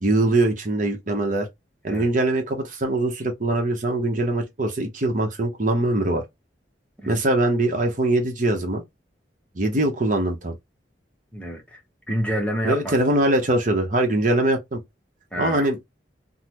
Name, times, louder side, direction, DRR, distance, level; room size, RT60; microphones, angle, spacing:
voice 1, 0.0-1.5 1.8-6.2 7.1-8.8 9.5-10.5 12.6-14.8 15.4-15.9, right 1 dB, 45° right, 0.8 m, -22 dB
voice 2, 11.3-11.8 12.1-12.9 15.3-15.7, equal, 5° left, 0.8 m, -28 dB
3.7 x 2.0 x 2.9 m
head